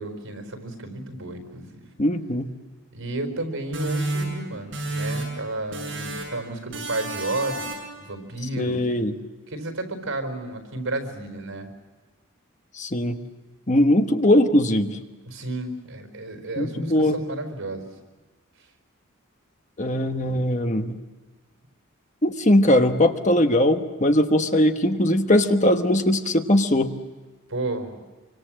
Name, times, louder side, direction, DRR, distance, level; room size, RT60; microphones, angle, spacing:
voice 1, 0.0-1.9 2.9-8.8 9.5-11.7 15.3-17.9 27.5-28.0, right 2 dB, 90° right, 6 dB, 4.7 m, -32 dB
voice 2, 2.0-2.5 8.6-9.1 12.7-13.2 13.7-15.0 16.6-17.2 19.8-21.0 22.2-26.9, left 1 dB, 35° left, 6 dB, 1.2 m, -20 dB
sound 1, 3.7-5.4 5.7-6.4 6.7-8.0, right 2 dB, 65° right, 7.8 m, -30 dB
26.0 x 25.0 x 7.6 m, 1.2 s
head